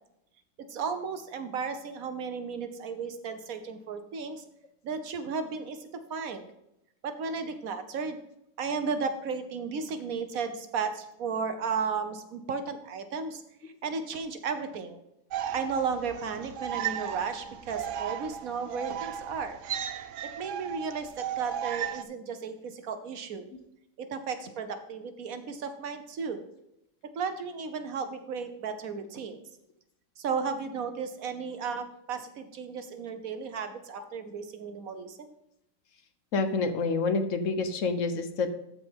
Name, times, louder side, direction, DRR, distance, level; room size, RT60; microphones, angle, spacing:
voice 1, 0.6-4.4 4.8-6.5 7.0-8.2 8.6-15.0 15.5-19.6 20.4-23.5 24.0-26.4 27.1-29.4 30.2-35.3, right 5 dB, 85° right, 8 dB, 1.5 m, -34 dB
sound 1, 15.3-22.0, right 9 dB, 70° right, 0.9 m, -35 dB
voice 2, 36.3-38.5, left 4 dB, 65° left, 8 dB, 1.3 m, -28 dB
14.5 x 5.2 x 3.6 m, 0.82 s
omnidirectional pair, 1.4 m